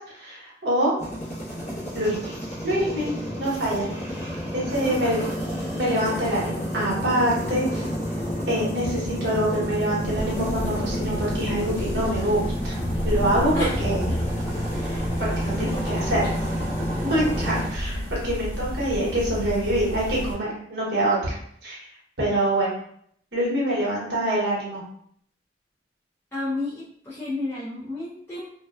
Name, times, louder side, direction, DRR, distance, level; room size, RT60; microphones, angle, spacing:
voice 1, 0.1-0.9 1.9-2.3 2.6-3.1 3.4-3.9 4.5-5.2 5.7-7.9 8.5-12.7 13.0-13.5 13.8-14.1 14.7-16.3 16.7-21.4 21.6-21.8 22.2-22.7 23.3-24.8, right 1 dB, 70° right, -5 dB, 1.0 m, -25 dB
sound 1, 1.0-17.7, equal, 40° left, 0.9 m, -30 dB
voice 2, 4.8-5.5 13.5-14.2 15.5-16.3 17.0-17.1 26.3-28.5, left 2 dB, 15° left, -10 dB, 0.5 m, -32 dB
sound 2, 10.0-20.3, equal, 50° right, 0.7 m, -31 dB
2.7 x 2.1 x 2.3 m, 0.66 s
head